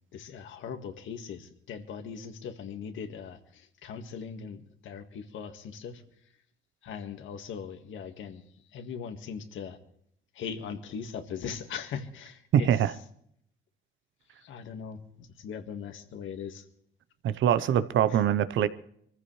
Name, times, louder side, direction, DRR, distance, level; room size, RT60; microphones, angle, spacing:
voice 1, 0.1-6.0 6.8-8.4 8.7-9.8 10.3-12.7 14.4-16.6 18.1-18.2, left 7 dB, 80° left, 1.8 m, -40 dB
voice 2, 12.5-12.9 17.2-18.7, right 10 dB, 75° right, 0.9 m, -23 dB
24.5 x 15.0 x 3.3 m
cardioid pair, 90°, 20 cm